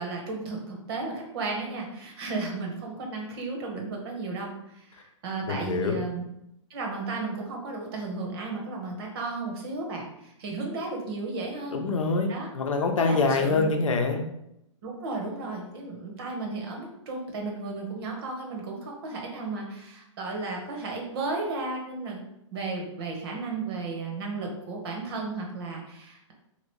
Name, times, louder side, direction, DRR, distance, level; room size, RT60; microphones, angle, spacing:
voice 1, 0.0-6.2 6.7-11.8 12.3-12.5 13.0-13.7 14.8-22.2 22.5-26.3, right 3 dB, 50° right, 0 dB, 1.0 m, -34 dB
voice 2, 5.5-6.0 11.7-14.3, left 4 dB, 90° left, 4 dB, 0.6 m, -25 dB
2.9 x 2.6 x 3.1 m, 0.79 s
hypercardioid pair, 145°, 16 cm